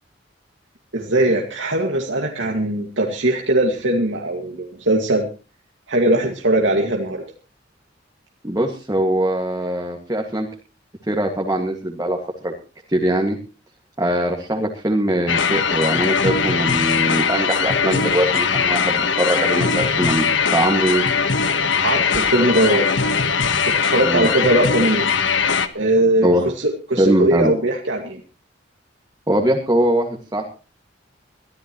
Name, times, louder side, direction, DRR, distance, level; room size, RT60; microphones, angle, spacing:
voice 1, 0.9-5.3 5.9-7.2 21.8-22.9 23.7-25.1 25.7-28.2, right 1 dB, 80° right, 1 dB, 2.0 m, -20 dB
voice 2, 8.4-10.5 11.1-12.2 12.4-12.5 12.9-13.4 14.0-21.1 24.0-24.3 26.2-26.4 27.0-27.6 29.3-30.4, right 1 dB, 20° right, 1 dB, 2.0 m, -21 dB
sound 1, 15.3-25.7, left 6 dB, 85° left, 1.3 m, -20 dB
23.0 x 14.0 x 3.1 m, 0.33 s
head